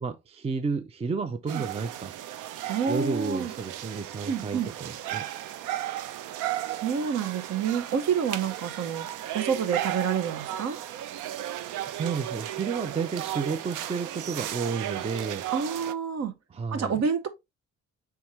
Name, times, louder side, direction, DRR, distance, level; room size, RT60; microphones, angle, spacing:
voice 1, 0.0-2.1 2.9-5.2 11.9-15.5 16.5-17.0, right 5 dB, 20° right, 0.4 m, -31 dB
sound 1, 1.5-15.9, right 13 dB, 90° right, 0.5 m, -35 dB
voice 2, 2.7-3.5 4.3-4.7 6.7-9.1 9.3-10.8 15.5-16.3 16.7-17.3, right 7 dB, 60° right, 0.9 m, -28 dB
4.6 x 3.6 x 2.8 m
cardioid pair, 90°, 30 cm